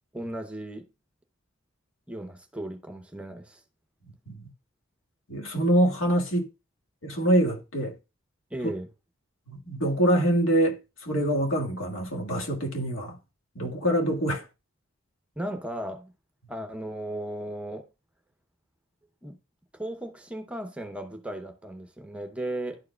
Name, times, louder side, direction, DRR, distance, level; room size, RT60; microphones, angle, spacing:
voice 1, 0.1-0.9 2.1-3.6 8.5-8.9 15.4-16.1 16.5-17.8 19.2-19.4 19.7-22.8, right 1 dB, 5° right, 0.7 m, -36 dB
voice 2, 5.3-6.5 7.0-7.9 9.5-13.2 13.5-14.4, right 1 dB, 80° left, 1.6 m, -25 dB
11.5 x 4.7 x 2.2 m
head